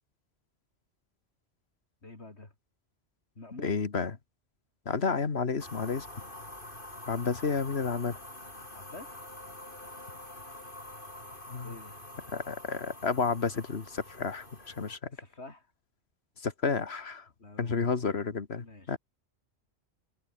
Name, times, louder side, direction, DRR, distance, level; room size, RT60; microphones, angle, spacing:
voice 1, 2.0-2.5 3.3-3.8 8.7-9.2 11.6-12.0 15.1-15.7 17.4-18.0 18.6-19.0, left 2 dB, 90° left, 4.4 m, -48 dB
voice 2, 3.6-4.1 4.9-6.1 7.1-8.2 11.5-11.7 12.3-15.1 16.4-17.3 17.6-19.0, left 5 dB, 75° left, 2.0 m, -31 dB
sound 1, 5.6-15.0, left 1 dB, 50° left, 6.1 m, -46 dB
omnidirectional pair, 1.1 m